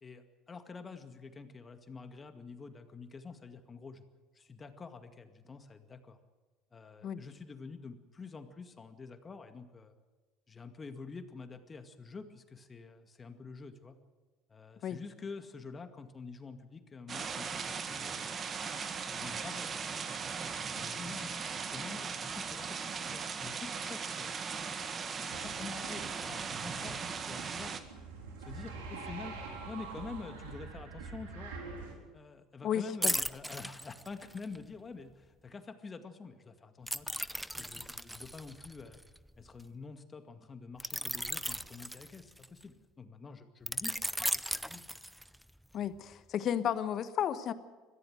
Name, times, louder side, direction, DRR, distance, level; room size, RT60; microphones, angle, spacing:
voice 1, 0.0-4.0 4.3-6.2 6.7-9.9 10.5-14.0 14.5-18.4 19.0-20.1 20.7-21.3 21.6-22.8 23.1-24.3 25.2-27.8 28.4-29.4 29.7-31.5 32.1-37.1 37.6-39.0 39.4-44.0 44.6-44.8, left 4 dB, 30° left, 8 dB, 2.1 m, -47 dB
sound 1, 17.1-27.8, right 5 dB, 35° right, 1.8 m, -38 dB
sound 2, 25.3-31.9, right 4 dB, 80° right, 4.0 m, -45 dB
voice 2, 32.6-33.1 45.7-47.5, left 9 dB, 50° left, 12 dB, 1.3 m, -33 dB
sound 3, 33.0-34.6 36.9-39.6 40.8-42.6 43.7-45.5 45.9-46.1, equal, ahead, 0.6 m, -36 dB
22.0 x 15.0 x 7.9 m, 1.3 s
hypercardioid pair, 75°, 0 cm